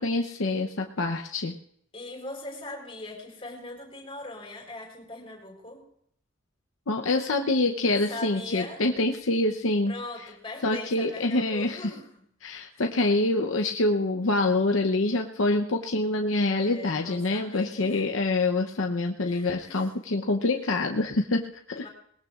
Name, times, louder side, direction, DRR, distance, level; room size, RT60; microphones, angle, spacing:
voice 1, 0.0-1.5 6.9-9.9 10.6-11.9 12.4-21.9, left 2 dB, 85° left, 3 dB, 0.8 m, -26 dB
voice 2, 1.9-5.8 8.1-8.8 9.9-12.2 12.7-12.8 16.6-18.1 19.3-20.2 21.8-21.9, left 2 dB, 25° left, 0 dB, 4.3 m, -41 dB
21.0 x 19.5 x 2.5 m, 0.67 s
head